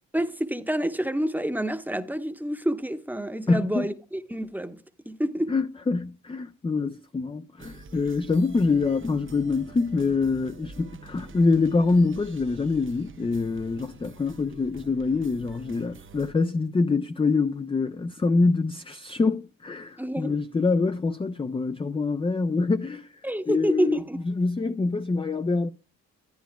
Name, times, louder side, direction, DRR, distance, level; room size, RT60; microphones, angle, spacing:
voice 1, 0.1-5.5 20.0-20.3 23.2-24.2, right 1 dB, 5° right, 0.9 m, -28 dB
voice 2, 3.5-3.9 5.5-23.1 23.5-24.0 24.3-25.7, left 3 dB, 15° left, 0.4 m, -25 dB
sound 1, 7.6-16.3, right 4 dB, 35° right, 0.6 m, -47 dB
11.5 x 10.0 x 2.3 m
supercardioid pair, 50°, 34 cm